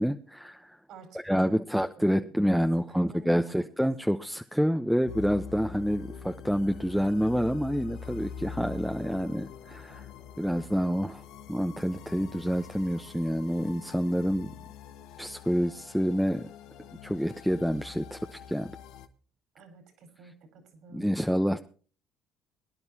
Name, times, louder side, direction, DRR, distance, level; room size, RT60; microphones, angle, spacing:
voice 1, 0.0-0.8 1.2-10.1 10.4-11.2 11.5-14.5 15.2-16.5 17.0-18.7 20.9-21.7, equal, ahead, 6 dB, 0.9 m, -28 dB
voice 2, 2.0-2.3 2.9-3.7 19.5-21.1, right 3 dB, 70° right, 7 dB, 4.7 m, -51 dB
sound 1, 5.1-19.1, left 6 dB, 75° left, 1.4 m, -45 dB
23.0 x 10.5 x 2.8 m, 0.40 s
supercardioid pair, 70°, 0 cm